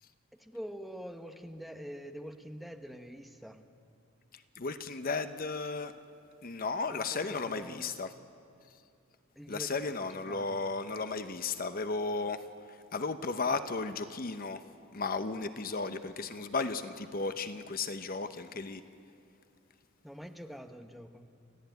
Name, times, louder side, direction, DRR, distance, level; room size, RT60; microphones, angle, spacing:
voice 1, 0.4-3.6 6.9-8.0 9.3-11.0 20.0-21.3, equal, ahead, 5 dB, 1.0 m, -46 dB
voice 2, 4.6-5.9 6.4-8.1 9.5-12.4 12.9-14.6 14.9-18.8, left 4 dB, 45° left, 10 dB, 0.8 m, -34 dB
30.0 x 14.0 x 9.2 m, 2.4 s
head